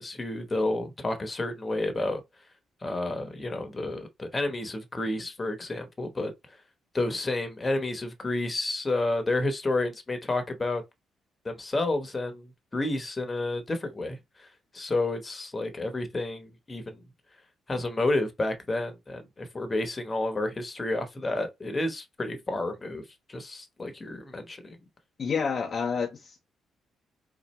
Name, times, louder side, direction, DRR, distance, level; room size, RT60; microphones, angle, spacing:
voice 1, 0.0-2.2 2.8-6.3 6.9-10.8 11.4-14.5 14.7-17.0 17.7-24.8, left 2 dB, 25° left, 1.0 m, -30 dB
voice 2, 25.2-26.4, left 6 dB, 45° left, 0.6 m, -29 dB
4.1 x 2.5 x 3.1 m
cardioid pair, 90°, 0 cm